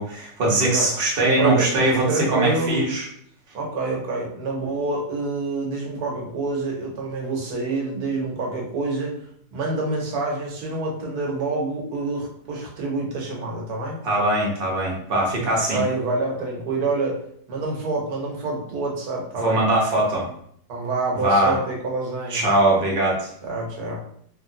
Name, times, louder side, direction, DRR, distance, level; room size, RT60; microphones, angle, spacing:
voice 1, 0.0-3.0 14.0-15.8 19.4-20.3 21.2-21.5 22.3-23.3, right 1 dB, 45° right, -3 dB, 0.9 m, -21 dB
voice 2, 1.4-1.7 2.1-2.9 3.5-9.2 9.5-14.0 15.7-17.2 17.5-19.7 20.7-22.4 23.4-24.0, right 3 dB, 70° right, -1 dB, 1.3 m, -27 dB
3.3 x 2.5 x 2.7 m, 0.65 s
omnidirectional pair, 1.7 m